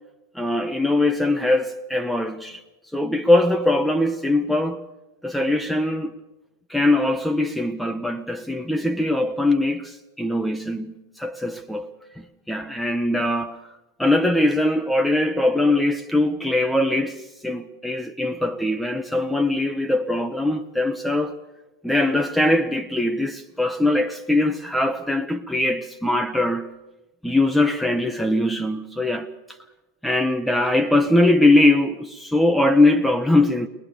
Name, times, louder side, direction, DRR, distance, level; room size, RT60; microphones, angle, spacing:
voice 1, 0.3-2.6 2.9-4.8 5.2-6.1 6.7-11.9 12.5-13.6 14.0-21.4 21.8-26.7 27.2-29.3 30.0-33.7, left 1 dB, ahead, 0.8 m, -21 dB
22.0 x 20.5 x 6.7 m
figure-of-eight pair, 90°, 0 cm